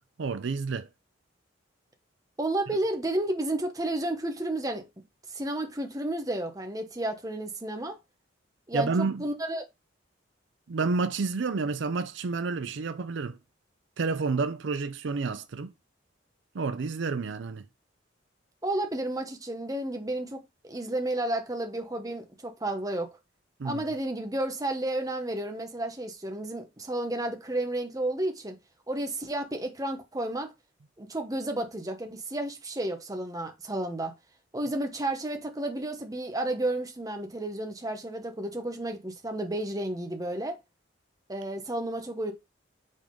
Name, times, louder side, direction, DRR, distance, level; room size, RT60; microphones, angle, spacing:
voice 1, 0.2-0.9 8.7-9.2 10.7-13.4 14.0-15.7 16.5-17.6 23.6-23.8, right 4 dB, 70° right, 0.5 m, -29 dB
voice 2, 2.4-4.9 5.3-8.0 8.7-8.9 9.2-9.6 18.6-23.1 23.6-28.6 28.9-30.5 31.0-34.1 34.5-40.6 41.3-42.3, right 1 dB, 20° right, 1.0 m, -32 dB
5.4 x 3.7 x 5.1 m
head